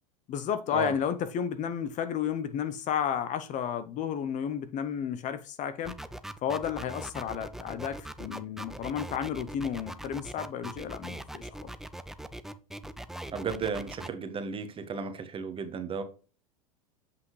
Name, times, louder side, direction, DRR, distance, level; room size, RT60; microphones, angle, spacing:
voice 1, 0.3-6.0 6.4-11.7, left 8 dB, 40° left, 0.8 m, -32 dB
sound 1, 5.8-14.1, right 1 dB, ahead, 0.5 m, -41 dB
voice 2, 13.3-16.0, right 5 dB, 25° right, 1.3 m, -34 dB
7.8 x 5.8 x 3.2 m
hypercardioid pair, 90°, 20 cm